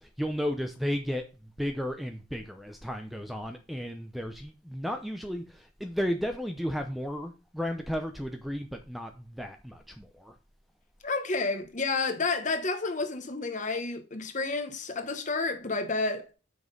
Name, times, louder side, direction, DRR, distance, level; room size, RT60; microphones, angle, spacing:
voice 1, 0.0-10.4, equal, ahead, 0.6 m, -34 dB
voice 2, 11.0-16.3, left 3 dB, 40° left, 1.1 m, -30 dB
6.2 x 5.4 x 5.2 m
head